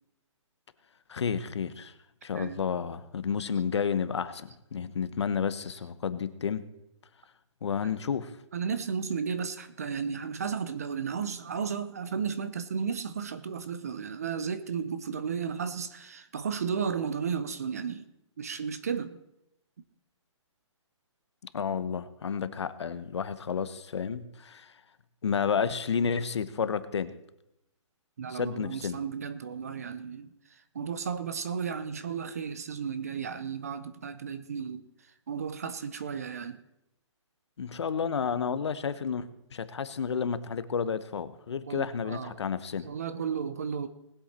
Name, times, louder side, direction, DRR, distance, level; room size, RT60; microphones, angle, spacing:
voice 1, 1.1-1.9 2.2-6.6 7.6-8.3 21.5-24.7 25.2-27.1 28.3-29.0 37.6-42.9, left 6 dB, 60° left, 0.9 m, -31 dB
voice 2, 8.5-18.1 18.4-19.2 28.2-30.3 30.7-34.8 35.3-36.6 41.7-42.4 42.8-43.9, right 6 dB, 30° right, 0.5 m, -34 dB
20.0 x 7.9 x 4.3 m
hypercardioid pair, 175°, 16 cm